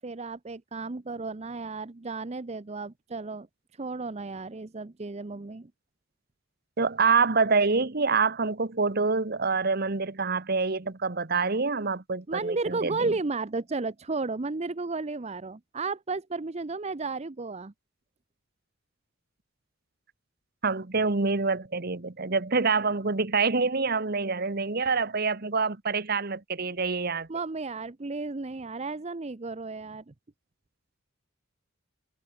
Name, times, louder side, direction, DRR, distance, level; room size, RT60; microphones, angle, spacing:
voice 1, 0.0-3.5 3.8-5.7 12.3-17.7 27.3-30.1, right 3 dB, 30° right, 0.6 m, -33 dB
voice 2, 6.8-13.1 20.6-27.3, right 4 dB, 50° right, 1.3 m, -26 dB
head